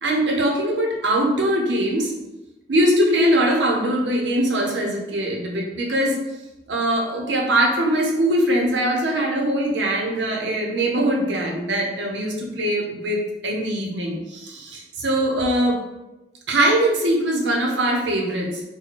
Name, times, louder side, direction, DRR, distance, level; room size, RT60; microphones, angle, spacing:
voice 1, 0.0-2.1 2.7-6.2 6.7-15.8 16.5-18.6, right 1 dB, 80° right, 0 dB, 0.7 m, -22 dB
3.0 x 2.2 x 4.1 m, 1.0 s
head